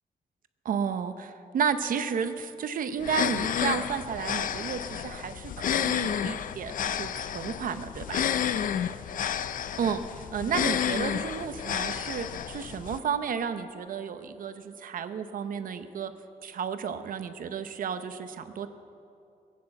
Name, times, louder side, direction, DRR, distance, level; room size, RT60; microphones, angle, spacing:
voice 1, 0.6-8.3 9.8-16.1 16.4-18.7, right 7 dB, 70° right, 9 dB, 0.8 m, -32 dB
sound 1, 3.0-13.0, left 9 dB, 65° left, 0.5 m, -31 dB
18.5 x 9.5 x 7.7 m, 2.6 s
wide cardioid pair, 150°, 15 cm